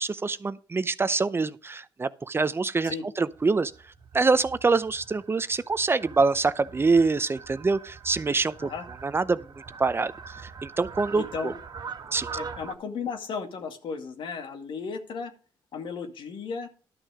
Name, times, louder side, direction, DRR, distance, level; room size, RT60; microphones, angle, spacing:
voice 1, 0.0-3.7 4.1-8.7 9.0-9.5 9.8-10.1 10.4-11.5 12.1-12.3, right 4 dB, 25° right, 0.6 m, -25 dB
Fowl, 3.3-12.7, right 5 dB, 50° right, 1.6 m, -43 dB
voice 2, 11.2-11.5 12.3-15.3 15.7-16.7, left 5 dB, 70° left, 2.1 m, -35 dB
12.5 x 6.3 x 4.9 m
cardioid pair, 90°, 9 cm